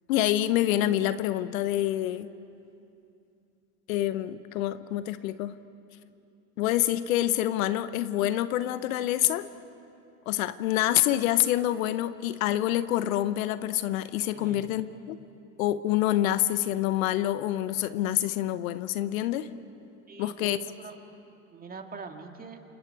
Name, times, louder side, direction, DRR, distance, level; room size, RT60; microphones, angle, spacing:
voice 1, 0.1-2.3 3.9-5.5 6.6-9.5 10.3-15.2 15.6-19.5 20.2-20.6, left 13 dB, 70° left, 13 dB, 1.0 m, -27 dB
voice 2, 14.3-14.8 20.1-21.0 21.5-22.6, right 5 dB, 20° right, 4 dB, 2.0 m, -43 dB
28.5 x 27.5 x 4.7 m, 2.7 s
hypercardioid pair, 105°, 43 cm